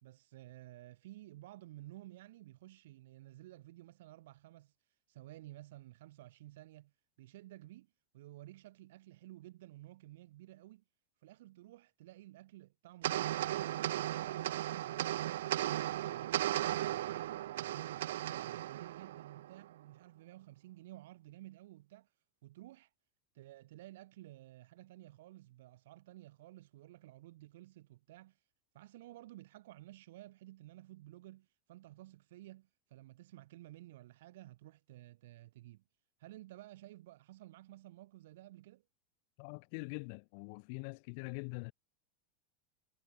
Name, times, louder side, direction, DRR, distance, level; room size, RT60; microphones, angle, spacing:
voice 1, 0.0-4.7 5.1-6.9 7.2-10.8 11.2-13.8 14.0-22.1 22.4-22.9 23.3-28.4 28.7-35.8 36.2-38.8, right 16 dB, 70° right, 3.3 m, -54 dB
sound 1, 13.0-19.7, right 13 dB, 85° right, 0.5 m, -36 dB
voice 2, 39.4-41.7, left 36 dB, 45° left, 1.5 m, -43 dB
supercardioid pair, 170°, 0 cm